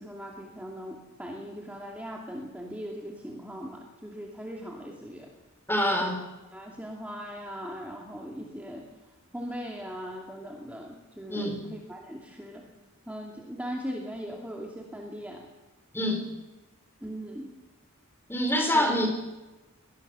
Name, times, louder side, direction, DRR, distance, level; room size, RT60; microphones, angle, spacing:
voice 1, 0.0-5.3 6.0-6.1 6.5-8.9 9.3-12.7 13.1-15.5 17.0-17.6 18.7-19.0, equal, 5° right, -1 dB, 2.6 m, -39 dB
voice 2, 5.7-6.2 11.3-11.6 15.9-16.2 18.3-19.1, equal, 10° left, 4 dB, 4.0 m, -25 dB
23.5 x 19.5 x 6.9 m, 1.1 s
head